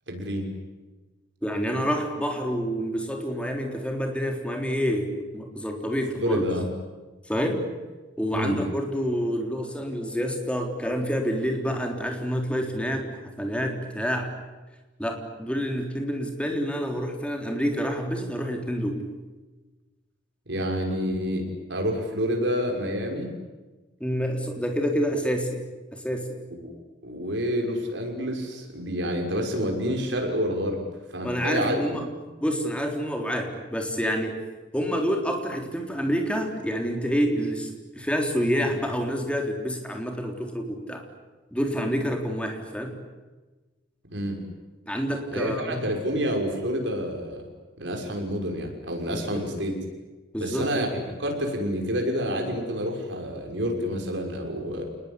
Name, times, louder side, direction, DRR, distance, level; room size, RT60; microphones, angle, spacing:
voice 1, 0.1-0.5 6.2-6.7 8.3-8.6 20.5-23.3 26.5-26.7 27.0-30.8 31.1-31.8 44.1-44.4 45.3-47.5 47.8-49.7 50.4-54.8, equal, 65° right, 2 dB, 6.2 m, -28 dB
voice 2, 1.4-6.4 7.3-7.6 8.2-14.3 15.0-19.0 24.0-25.6 25.9-26.4 31.2-32.0 32.4-34.4 34.7-41.0 41.5-43.0 44.9-45.8 49.3-49.5 50.3-51.0, equal, 5° left, 2 dB, 3.8 m, -28 dB
28.5 x 20.5 x 10.0 m, 1.2 s
head